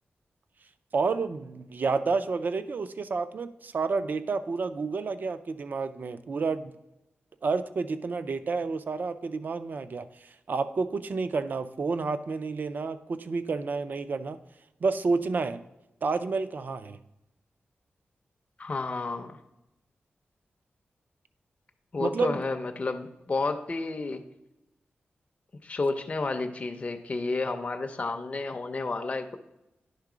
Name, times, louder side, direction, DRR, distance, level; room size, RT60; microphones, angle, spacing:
voice 1, 0.9-6.7 7.4-10.1 10.5-14.4 14.8-15.6 16.0-17.0 22.0-22.4, right 4 dB, 50° right, 11 dB, 0.4 m, -30 dB
voice 2, 18.6-19.4 21.9-24.3 25.6-29.4, left 3 dB, 35° left, 5 dB, 0.5 m, -31 dB
10.5 x 3.7 x 4.9 m, 0.92 s
wide cardioid pair, 170°, 4 cm